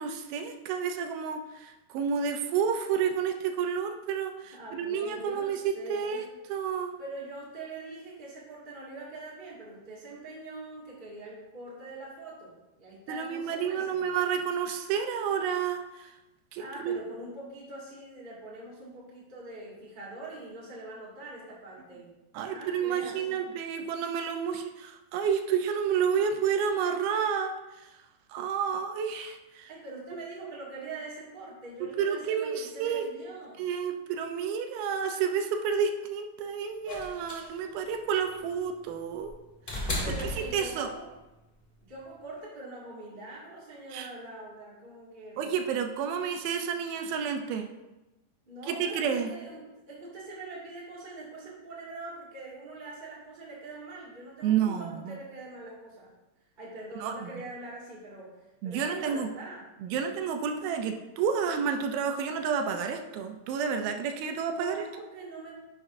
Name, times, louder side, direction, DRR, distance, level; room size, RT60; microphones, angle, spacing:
voice 1, 0.0-6.2 6.5-6.9 13.1-16.1 16.5-17.0 22.3-27.9 28.3-29.7 32.0-33.0 33.6-39.3 39.7-39.9 40.5-40.9 43.9-44.1 45.4-47.7 48.7-49.3 54.4-55.2 57.0-57.3 58.6-59.3 59.8-64.8, right 7 dB, 85° right, 6 dB, 2.5 m, -30 dB
voice 2, 4.4-6.3 7.0-14.0 16.6-22.1 22.4-23.4 29.7-33.6 40.0-41.1 41.9-45.6 48.5-49.6 49.9-56.1 56.6-58.3 58.6-59.6 64.5-65.5, right 2 dB, 20° right, -6 dB, 1.2 m, -43 dB
sound 1, 36.9-41.1 42.4-42.5, left 1 dB, 45° left, 0.6 m, -36 dB
10.5 x 6.2 x 2.6 m, 1.0 s
omnidirectional pair, 4.3 m